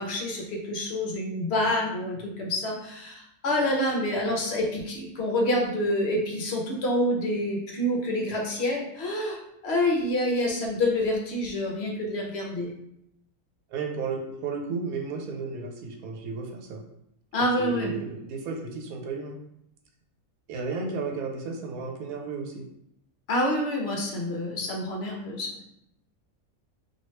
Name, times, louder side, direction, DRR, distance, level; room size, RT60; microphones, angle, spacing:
voice 1, 0.0-12.7 17.3-17.9 23.3-25.5, left 1 dB, 55° left, 0 dB, 0.9 m, -27 dB
voice 2, 13.7-16.8 17.6-19.4 20.5-22.7, right 4 dB, 85° right, 2 dB, 1.0 m, -33 dB
2.9 x 2.6 x 3.1 m, 0.77 s
omnidirectional pair, 1.5 m